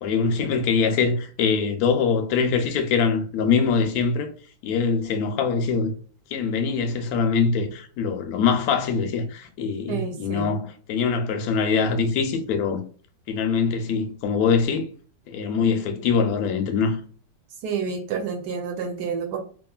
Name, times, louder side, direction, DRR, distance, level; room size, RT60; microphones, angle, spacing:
voice 1, 0.0-4.3 4.6-5.9 6.3-12.8 13.3-14.9 15.3-17.0, left 5 dB, 70° left, 0.9 m, -23 dB
voice 2, 9.9-10.5 17.6-19.4, right 6 dB, 75° right, 1.1 m, -29 dB
2.9 x 2.4 x 2.3 m
omnidirectional pair, 2.0 m